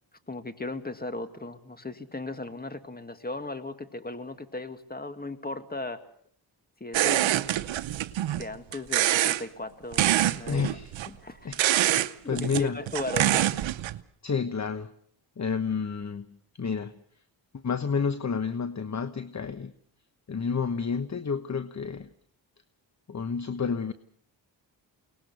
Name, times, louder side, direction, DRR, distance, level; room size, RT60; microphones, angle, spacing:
voice 1, 0.3-6.0 6.8-7.4 8.3-10.1 10.4-10.6 11.1-11.5 12.2-13.5, left 2 dB, 20° left, 9 dB, 2.2 m, -37 dB
sound 1, 6.9-8.5 8.7-9.4 9.9-11.1 11.5-12.1 12.4-14.0, right 13 dB, 90° right, 0.8 m, -25 dB
voice 2, 10.5-10.9 11.4-12.8 14.2-14.9 15.4-16.9 17.5-19.7 20.3-22.1 23.1-23.9, left 5 dB, 40° left, 11 dB, 1.1 m, -30 dB
23.0 x 19.5 x 6.8 m, 0.62 s
cardioid pair, 55°, 45 cm